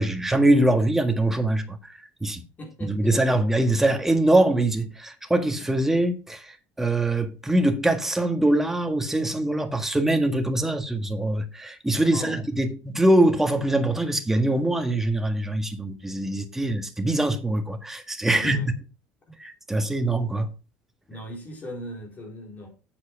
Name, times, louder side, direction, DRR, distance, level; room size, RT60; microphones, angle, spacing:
voice 1, 0.0-2.4 2.8-18.7 19.4-20.5, right 1 dB, 5° right, 1.7 m, -23 dB
voice 2, 2.6-3.4 12.0-12.4 18.2-18.7 21.1-22.7, equal, 35° left, 3.9 m, -39 dB
8.1 x 7.7 x 4.6 m
supercardioid pair, 105°, 5 cm